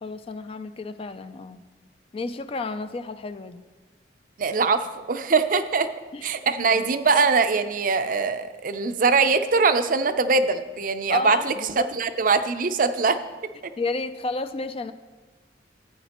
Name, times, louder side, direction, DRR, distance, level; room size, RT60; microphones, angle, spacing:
voice 1, 0.0-1.6 2.1-3.6 6.1-6.4 6.7-6.8 11.1-11.9 13.8-14.9, left 3 dB, 30° left, 11 dB, 0.3 m, -31 dB
voice 2, 4.4-5.9 6.2-13.2, right 4 dB, 45° right, 10 dB, 0.5 m, -22 dB
15.5 x 9.1 x 2.9 m, 1.3 s
head